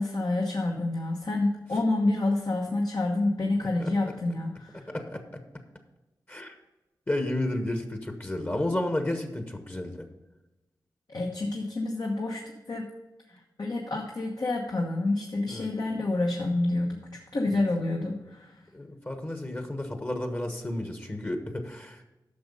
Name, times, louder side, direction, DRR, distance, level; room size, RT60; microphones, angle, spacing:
voice 1, 0.0-4.9 11.1-12.4 12.7-12.8 13.6-18.6, left 2 dB, 60° left, 0 dB, 1.2 m, -28 dB
voice 2, 4.7-5.4 6.3-6.6 7.1-10.1 15.5-15.7 17.5-17.6 18.7-22.1, left 1 dB, 30° left, 5 dB, 1.2 m, -32 dB
10.0 x 6.3 x 5.4 m, 1.0 s
cardioid pair, 60°, 8 cm